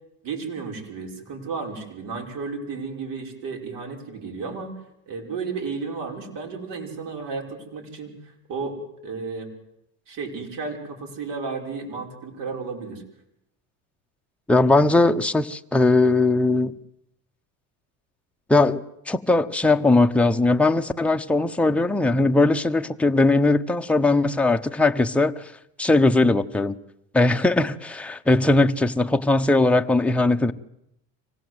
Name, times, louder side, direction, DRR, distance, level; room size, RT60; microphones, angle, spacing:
voice 1, 0.2-4.8 5.1-9.5 10.1-13.0, right 4 dB, 60° right, 5.6 m, -33 dB
voice 2, 14.5-16.8 18.5-25.5 25.8-26.7 27.1-30.5, left 2 dB, 5° left, 0.9 m, -19 dB
25.0 x 18.0 x 8.1 m
supercardioid pair, 105°, 37 cm